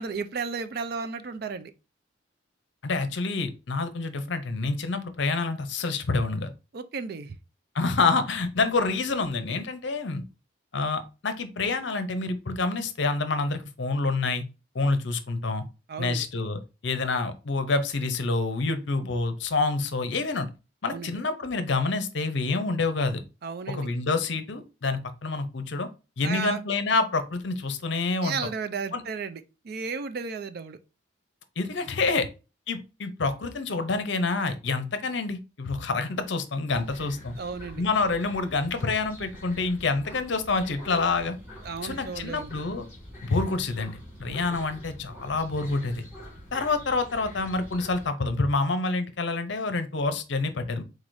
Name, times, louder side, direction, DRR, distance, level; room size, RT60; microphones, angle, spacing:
voice 1, 0.0-1.7 6.7-7.4 15.9-16.3 20.9-21.2 23.4-23.9 26.2-26.6 28.2-30.8 37.4-37.8 41.6-42.5 44.3-44.4, right 5 dB, 50° right, 0.4 m, -34 dB
voice 2, 2.8-6.5 7.7-10.2 10.7-14.4 14.7-15.6 16.0-20.5 20.8-23.2 23.7-25.9 26.2-28.4 28.9-29.0 31.6-32.3 32.7-37.3 37.8-41.4 41.8-42.9 43.2-46.0 46.5-50.8, left 3 dB, 60° left, 0.6 m, -27 dB
sound 1, 36.7-48.1, equal, 10° right, 2.5 m, -45 dB
4.7 x 3.9 x 2.6 m
head